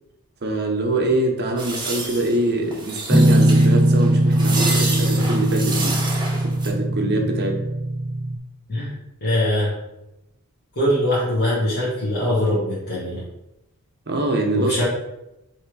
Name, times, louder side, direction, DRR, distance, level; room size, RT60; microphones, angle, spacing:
voice 1, 0.4-6.0 6.4-7.6 14.1-14.8, right 2 dB, 50° right, 2 dB, 0.8 m, -24 dB
sound 1, 1.6-6.7, right 3 dB, 20° right, 0.9 m, -29 dB
Guitar, 3.1-8.4, right 1 dB, 5° right, 0.3 m, -19 dB
voice 2, 9.2-9.7 10.7-13.2 14.5-14.8, left 1 dB, 45° left, -9 dB, 1.5 m, -22 dB
3.3 x 3.2 x 4.6 m, 0.90 s
head